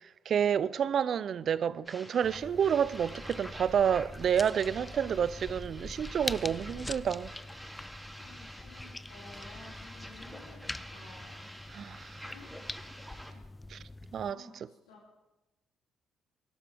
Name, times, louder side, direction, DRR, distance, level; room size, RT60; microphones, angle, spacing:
voice 1, 0.0-7.3 11.7-12.1 13.7-13.8 14.1-14.4, right 8 dB, 55° right, 0.5 m, -29 dB
sound 1, 1.8-13.3, equal, 5° right, 4.9 m, -48 dB
sound 2, 2.2-14.3, left 2 dB, 20° left, 0.4 m, -44 dB
voice 2, 8.2-11.5 12.3-12.7 13.3-13.4 14.3-15.0, left 3 dB, 85° left, 2.9 m, -54 dB
23.0 x 12.5 x 3.5 m
hypercardioid pair, 50°, 0 cm